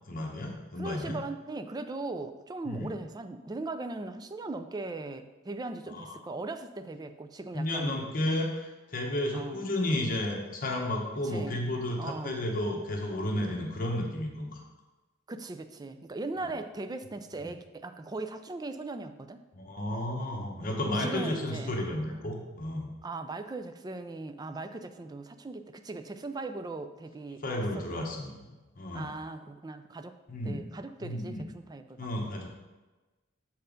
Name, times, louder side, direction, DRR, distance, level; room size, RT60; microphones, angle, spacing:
voice 1, 0.1-1.2 2.6-2.9 5.9-6.2 7.5-14.6 16.4-16.5 17.4-17.5 19.5-22.9 27.4-29.1 30.3-30.6 31.0-31.4 32.0-32.5, left 1 dB, 45° left, 1 dB, 1.1 m, -32 dB
voice 2, 0.8-8.0 8.3-8.4 9.3-9.7 11.2-11.6 12.0-12.5 15.3-19.4 21.0-21.8 23.0-27.4 27.7-28.0 28.9-30.1 30.4-32.2, right 2 dB, 20° right, 9 dB, 0.4 m, -39 dB
6.8 x 4.5 x 5.0 m, 1.2 s
head